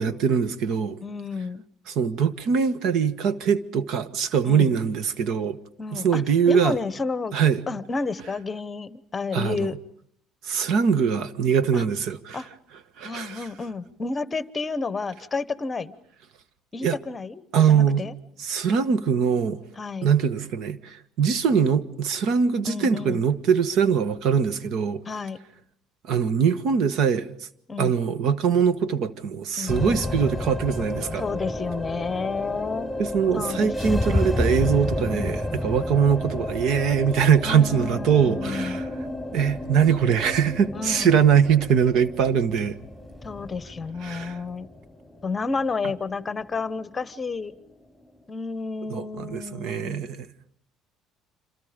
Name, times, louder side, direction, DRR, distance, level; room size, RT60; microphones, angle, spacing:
voice 1, 0.0-1.0 1.9-5.6 5.9-6.8 7.3-7.6 9.3-9.8 10.4-12.4 13.0-13.5 16.8-17.0 17.5-18.0 18.4-19.6 20.0-25.0 26.1-27.3 27.8-31.2 33.0-38.9 39.3-42.8 44.0-44.4 48.9-50.3, right 7 dB, 65° right, 1.5 m, -22 dB
voice 2, 1.0-1.6 4.5-4.7 5.8-7.4 7.7-9.7 11.7-11.8 12.3-12.5 13.0-16.0 16.7-17.4 17.7-18.1 19.8-20.1 22.6-23.2 25.1-25.4 27.7-27.9 29.6-30.0 31.2-32.9 33.3-34.0 35.0-35.3 37.4-38.8 40.7-41.2 43.2-44.7 45.2-47.5 48.3-50.1, left 4 dB, 20° left, 1.1 m, -31 dB
sound 1, 29.7-48.2, left 1 dB, ahead, 4.6 m, -31 dB
28.5 x 26.5 x 5.2 m
cardioid pair, 125°, 0 cm